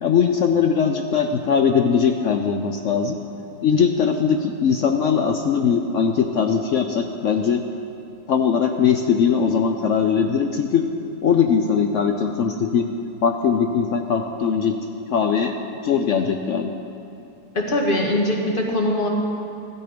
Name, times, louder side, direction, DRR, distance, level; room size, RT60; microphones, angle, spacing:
voice 1, 0.0-3.2 3.6-7.6 8.3-10.8 11.2-12.9 13.2-14.8 15.1-15.5 15.8-16.7, left 6 dB, 75° left, 4 dB, 0.7 m, -20 dB
voice 2, 17.5-19.1, left 1 dB, 30° left, 0 dB, 1.7 m, -21 dB
15.0 x 12.5 x 5.1 m, 2.7 s
omnidirectional pair, 2.0 m